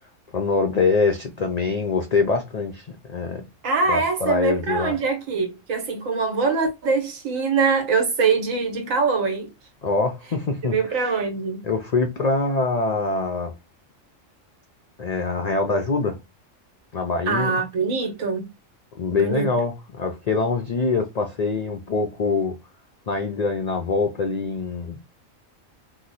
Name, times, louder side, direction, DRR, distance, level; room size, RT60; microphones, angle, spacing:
voice 1, 0.3-3.5 3.9-5.0 9.8-11.1 11.6-13.5 15.0-16.2 16.9-17.6 19.0-22.6 23.1-25.0, left 3 dB, 70° left, 0.4 m, -24 dB
voice 2, 3.6-9.5 10.7-11.6 17.3-18.5 19.1-19.5, right 4 dB, 80° right, 1.4 m, -23 dB
2.9 x 2.1 x 3.9 m
omnidirectional pair, 1.3 m